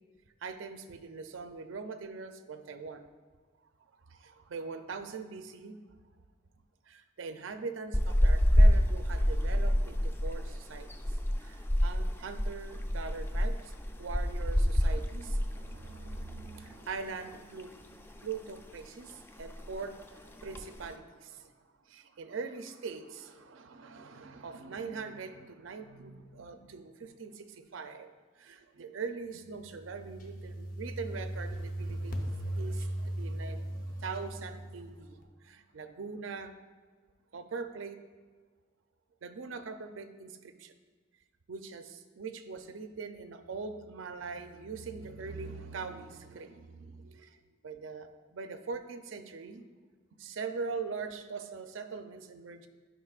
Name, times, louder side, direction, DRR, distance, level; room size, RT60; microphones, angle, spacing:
voice 1, 0.4-3.0 4.1-5.8 6.9-13.7 14.0-21.5 21.9-36.5 37.3-38.0 39.2-40.7 41.5-49.6 50.1-52.7, right 4 dB, 90° right, 8 dB, 0.5 m, -42 dB
sound 1, 7.9-16.5 16.7-16.9 17.3-18.2 18.5-18.9 19.1-19.2 19.4-19.8 20.4-20.9, equal, 10° left, 0.3 m, -27 dB
sound 2, 29.5-35.1, right 1 dB, 45° left, 0.8 m, -38 dB
11.0 x 5.1 x 2.4 m, 1.5 s
head